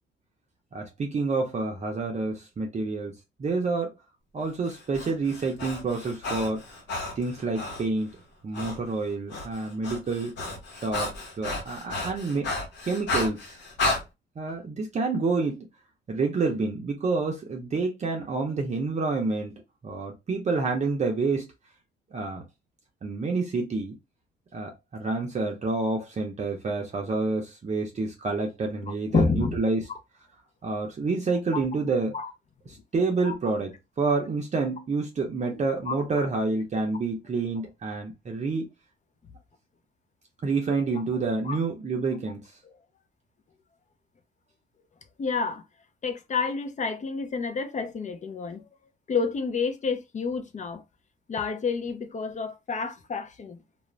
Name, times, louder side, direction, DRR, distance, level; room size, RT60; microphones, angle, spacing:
voice 1, 0.7-3.9 4.3-6.6 7.2-10.3 10.8-12.5 12.9-13.6 14.4-15.7 16.1-19.5 19.8-21.5 22.1-22.4 23.0-24.0 24.5-29.9 30.6-32.2 32.7-38.6 40.4-42.4, right 3 dB, 35° right, 0.6 m, -28 dB
Breathing, 4.7-7.9 8.5-8.8 9.1-14.0, left 2 dB, 65° left, 0.9 m, -32 dB
voice 2, 29.1-29.6 31.5-31.6 32.1-32.3 33.2-33.3 35.9-36.2 41.5-41.6 45.2-45.6 46.0-48.6 49.1-50.8 51.3-53.6, left 4 dB, 35° left, 0.6 m, -29 dB
2.4 x 2.0 x 3.1 m
cardioid pair, 90°, 20 cm